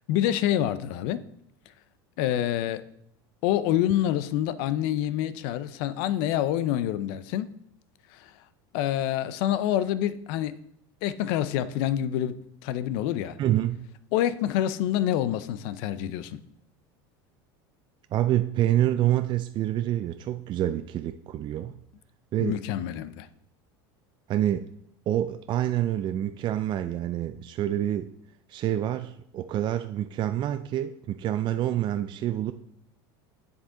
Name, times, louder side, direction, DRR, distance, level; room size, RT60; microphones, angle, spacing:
voice 1, 0.1-1.2 2.2-2.8 3.4-7.5 8.1-8.3 8.7-10.6 11.0-13.4 14.1-16.4 22.4-23.3, left 11 dB, 65° left, 0.6 m, -27 dB
voice 2, 13.4-13.8 18.1-21.7 22.3-22.6 24.3-24.7 25.1-28.1 28.5-32.5, right 12 dB, 40° right, 0.4 m, -27 dB
8.2 x 7.2 x 3.8 m
supercardioid pair, 105°, 12 cm